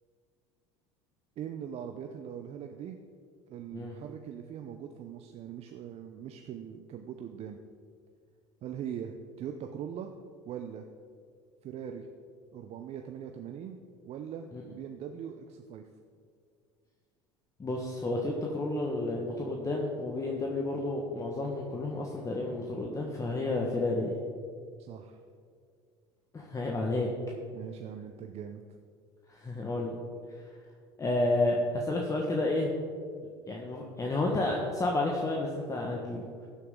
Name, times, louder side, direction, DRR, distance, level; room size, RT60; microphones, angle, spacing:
voice 1, 1.4-3.0 3.5-7.6 8.6-10.1 10.4-10.9 11.6-12.1 12.5-13.8 14.0-15.8 24.8-25.2 27.5-28.6, right 8 dB, 50° right, 5 dB, 0.7 m, -41 dB
voice 2, 17.6-24.2 26.3-27.1 29.3-30.0 31.0-32.8 33.5-36.2, left 2 dB, 25° left, -1 dB, 1.4 m, -31 dB
15.0 x 8.5 x 3.8 m, 2.2 s
hypercardioid pair, 80°, 14 cm